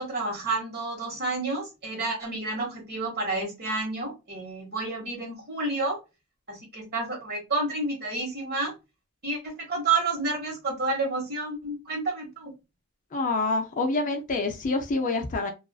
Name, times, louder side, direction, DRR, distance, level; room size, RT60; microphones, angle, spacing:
voice 1, 0.0-6.0 6.5-8.7 9.2-12.5, right 3 dB, 45° right, 1.2 m, -30 dB
voice 2, 13.1-15.5, left 3 dB, 35° left, 0.4 m, -27 dB
2.4 x 2.3 x 2.3 m
head